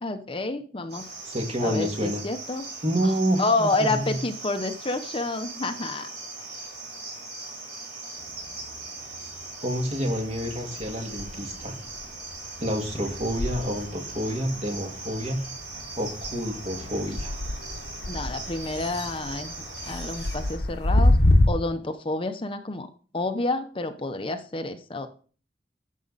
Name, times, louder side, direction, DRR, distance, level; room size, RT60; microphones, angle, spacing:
voice 1, 0.0-1.3 1.6-2.7 3.0-3.1 3.4-6.1 18.1-19.5 19.9-21.2 21.5-25.1, left 2 dB, 30° left, 8 dB, 0.8 m, -29 dB
Cricket, 0.9-20.6, right 3 dB, 60° right, 5.1 m, -40 dB
voice 2, 1.3-2.2 2.8-4.2 9.6-11.8 12.6-15.4 16.0-17.4, equal, 35° right, 3 dB, 2.2 m, -28 dB
sound 1, 8.2-9.4 9.8-21.5, left 1 dB, 65° left, 1.1 m, -28 dB
12.5 x 7.5 x 4.1 m, 0.39 s
head